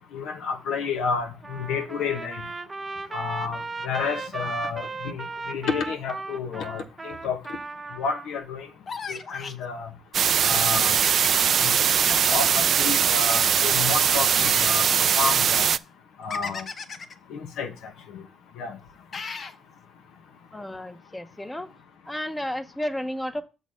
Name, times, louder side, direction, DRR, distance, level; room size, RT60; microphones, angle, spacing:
voice 1, 0.1-2.4 3.1-7.4 8.0-8.7 9.1-9.9 10.4-10.9 11.6-11.7 12.1-15.7 16.2-16.7 17.3-18.2 18.6-18.8, left 5 dB, 85° left, 1.1 m, -30 dB
Trumpet, 1.4-8.3, right 3 dB, 25° right, 0.7 m, -36 dB
sound 1, 8.9-9.6 11.0-12.7 14.3-14.8 16.3-17.1 19.1-19.6, left 5 dB, 50° left, 0.8 m, -35 dB
sound 2, 10.1-15.8, right 8 dB, 60° right, 0.3 m, -21 dB
voice 2, 20.5-21.7 22.1-23.4, left 1 dB, 10° left, 0.8 m, -32 dB
7.1 x 4.0 x 6.3 m
cardioid pair, 90°, 0 cm